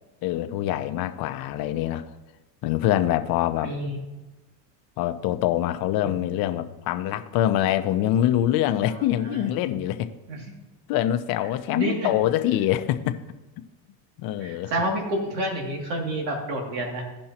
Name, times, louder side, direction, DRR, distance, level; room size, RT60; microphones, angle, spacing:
voice 1, 0.2-2.0 2.6-3.7 5.0-10.1 10.9-13.2 14.2-14.7, left 12 dB, 45° left, 9 dB, 0.8 m, -24 dB
voice 2, 3.6-4.0 8.9-9.7 10.3-10.5 11.7-12.2 14.4-17.0, right 1 dB, 85° right, 0 dB, 2.7 m, -29 dB
16.0 x 5.4 x 2.9 m, 1.1 s
supercardioid pair, 120°, 49 cm